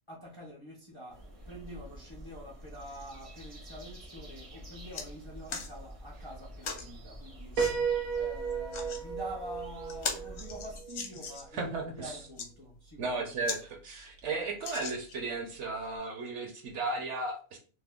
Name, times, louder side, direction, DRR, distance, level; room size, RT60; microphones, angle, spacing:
voice 1, 0.1-7.8 8.1-13.3, equal, 35° left, 0.5 m, -46 dB
sound 1, 1.1-10.8, right 1 dB, 40° right, 0.5 m, -48 dB
sound 2, 4.3-4.4 4.7-5.1 5.5-5.7 6.6-6.9 7.5-7.7 8.5-9.0 9.5-9.6 9.9-11.6 12.2-12.5 13.0-13.1 13.4-13.6 14.0-14.1 14.6-15.3 16.0-16.1, left 5 dB, 65° left, 0.9 m, -39 dB
Piano, 7.6-11.3, right 6 dB, 85° right, 1.0 m, -34 dB
voice 2, 11.5-12.2 13.0-17.6, right 3 dB, 65° right, 0.8 m, -35 dB
2.7 x 2.1 x 3.4 m
omnidirectional pair, 1.4 m